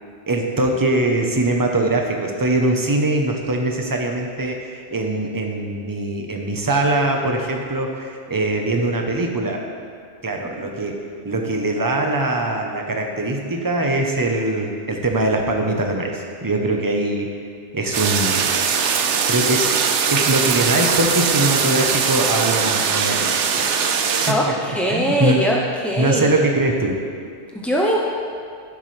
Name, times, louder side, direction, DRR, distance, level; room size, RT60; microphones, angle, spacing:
voice 1, 0.3-9.6 10.2-17.3 17.7-18.4 19.3-23.7 24.3-24.6 24.9-25.4 26.0-27.0, right 2 dB, 20° right, 2 dB, 0.8 m, -22 dB
sound 1, 17.9-24.3, right 6 dB, 85° right, 1.0 m, -20 dB
voice 2, 24.2-25.6 25.8-26.2 27.6-28.0, equal, ahead, -3 dB, 0.4 m, -21 dB
14.5 x 7.3 x 3.3 m, 2.3 s
omnidirectional pair, 1.2 m